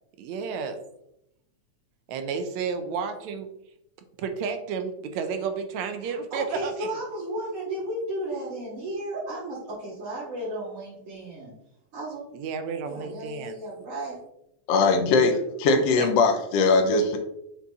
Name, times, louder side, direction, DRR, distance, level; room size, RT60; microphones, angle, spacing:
voice 1, 0.2-0.8 2.1-3.5 4.2-7.0 12.3-13.6 16.0-16.1, right 5 dB, 75° right, 7 dB, 2.0 m, -31 dB
voice 2, 6.0-11.5 11.9-12.2 12.8-14.2, right 1 dB, 50° right, -12 dB, 3.7 m, -34 dB
voice 3, 14.7-17.2, left 3 dB, 70° left, 4 dB, 1.8 m, -21 dB
6.9 x 4.4 x 4.1 m, 0.80 s
omnidirectional pair, 3.3 m